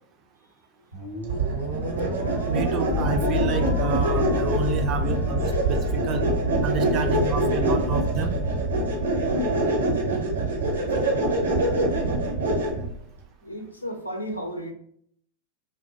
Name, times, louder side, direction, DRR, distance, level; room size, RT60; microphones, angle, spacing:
sound 1, 0.9-7.4, right 1 dB, 90° right, 1.0 m, -37 dB
sound 2, 1.3-12.9, right 2 dB, 75° right, 0.6 m, -25 dB
voice 1, 2.5-5.4 5.7-6.2 6.6-8.3, right 4 dB, 35° right, 7 dB, 0.3 m, -29 dB
sound 3, 2.9-9.0, left 9 dB, 25° left, 0.5 m, -31 dB
voice 2, 13.4-14.7, equal, 80° left, 3 dB, 0.4 m, -34 dB
2.2 x 2.1 x 2.6 m, 0.64 s
figure-of-eight pair, 90°, 0 cm